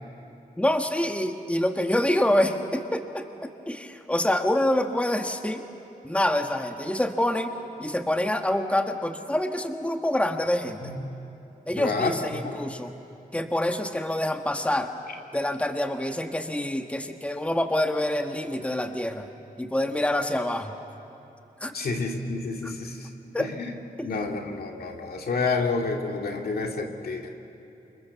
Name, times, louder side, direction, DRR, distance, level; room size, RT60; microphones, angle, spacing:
voice 1, 0.6-3.3 3.7-5.6 6.0-10.9 11.7-12.9 13.3-14.9 15.3-19.3 19.6-20.7 21.6-21.7 22.6-22.7 23.3-23.5 24.0-24.4, left 1 dB, 10° left, 5 dB, 1.5 m, -26 dB
voice 2, 11.8-12.6 21.7-23.1 23.4-23.8 24.0-27.3, left 4 dB, 90° left, 2 dB, 2.4 m, -29 dB
28.5 x 27.0 x 7.1 m, 3.0 s
wide cardioid pair, 100°, 15 cm